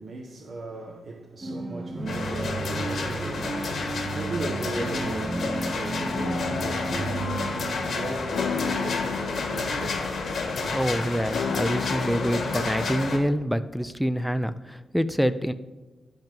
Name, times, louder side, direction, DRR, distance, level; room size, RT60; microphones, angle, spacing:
voice 1, 0.0-7.6 7.9-10.1, right 2 dB, 60° right, 1.1 m, -37 dB
sound 1, 1.4-9.0, right 2 dB, 30° right, 1.4 m, -33 dB
sound 2, 2.1-13.2, left 3 dB, 75° left, 1.5 m, -30 dB
sound 3, 6.1-13.2, left 8 dB, 90° left, 0.4 m, -35 dB
voice 2, 10.7-15.5, equal, ahead, 0.5 m, -26 dB
10.5 x 5.5 x 5.3 m
cardioid pair, 80°, 0 cm